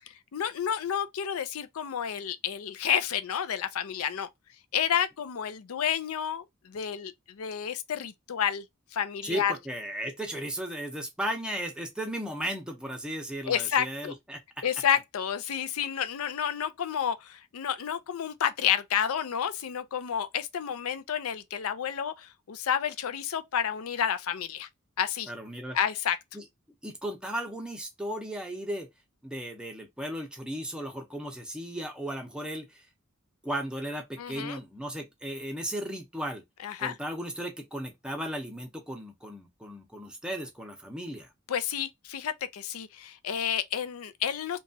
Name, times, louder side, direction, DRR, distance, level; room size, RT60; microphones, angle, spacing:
voice 1, 0.1-4.3 4.7-8.6 8.9-9.5 13.4-14.1 14.6-24.7 25.0-25.3 25.7-26.2 34.2-34.6 36.6-36.9 41.5-44.6, left 8 dB, 75° left, 0.4 m, -30 dB
voice 2, 9.2-14.4 25.3-25.8 26.3-26.4 26.8-28.9 29.2-32.8 33.4-36.4 36.8-41.3, right 1 dB, 5° right, 0.7 m, -35 dB
2.9 x 2.3 x 2.6 m
head